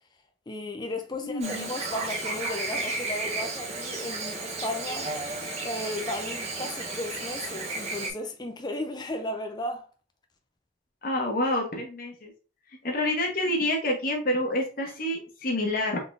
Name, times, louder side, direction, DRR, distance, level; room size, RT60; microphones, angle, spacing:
voice 1, 0.5-5.2 5.6-9.9, left 1 dB, 25° left, 0.5 m, -35 dB
voice 2, 1.2-1.7 11.0-12.3 12.8-16.0, left 1 dB, 50° left, 1.1 m, -28 dB
Chirp tweet / Buzz, 1.4-8.1, right 2 dB, 35° right, 1.0 m, -33 dB
3.9 x 3.6 x 2.6 m
head